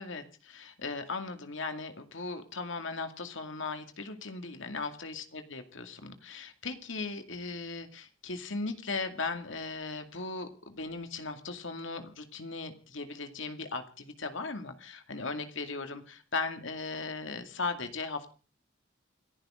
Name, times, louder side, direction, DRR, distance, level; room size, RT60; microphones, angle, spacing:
voice 1, 0.0-18.3, left 3 dB, 65° left, 7 dB, 2.4 m, -38 dB
28.5 x 11.0 x 3.8 m, 0.36 s
head